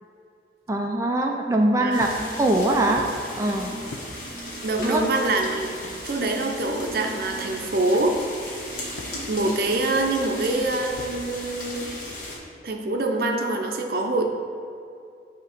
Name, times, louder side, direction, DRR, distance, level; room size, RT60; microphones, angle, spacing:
voice 1, 0.7-2.1 2.4-3.0 3.4-3.7 4.8-5.0, right 1 dB, 15° right, 1 dB, 0.4 m, -22 dB
voice 2, 1.8-2.1 4.6-5.7 6.0-8.2 9.3-12.0 12.6-14.2, right 2 dB, 55° right, 3 dB, 0.6 m, -25 dB
sound 1, 1.9-12.4, equal, 50° left, 1.4 m, -36 dB
sound 2, 2.0-2.4 3.0-3.1 3.9-4.1 4.7-4.9 5.8-6.0 6.9-7.0 7.9-8.1 9.0-9.4 10.0-10.1 10.9-11.2, left 3 dB, 85° left, 0.7 m, -40 dB
8.7 x 2.9 x 5.1 m, 2.4 s
head